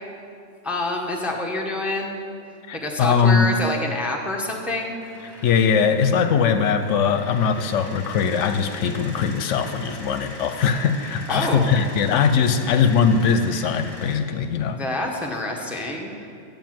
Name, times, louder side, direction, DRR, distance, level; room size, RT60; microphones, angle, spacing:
voice 1, 0.6-2.2 2.8-5.0 11.3-11.7 14.8-16.3, left 2 dB, ahead, 0 dB, 0.8 m, -27 dB
voice 2, 2.7-3.5 5.4-14.8, left 6 dB, 75° left, 9 dB, 0.9 m, -21 dB
sound 1, 5.0-14.2, left 1 dB, 20° left, 1.7 m, -41 dB
9.3 x 5.3 x 7.5 m, 2.5 s
omnidirectional pair, 1.3 m